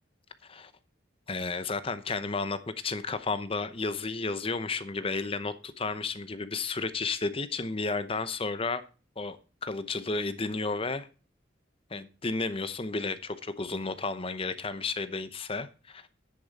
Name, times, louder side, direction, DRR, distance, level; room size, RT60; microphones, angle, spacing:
voice 1, 1.3-2.6 2.8-8.8 9.2-9.4 9.6-11.1 11.9-16.1, left 3 dB, 30° left, 0.8 m, -32 dB
10.5 x 8.4 x 4.2 m
head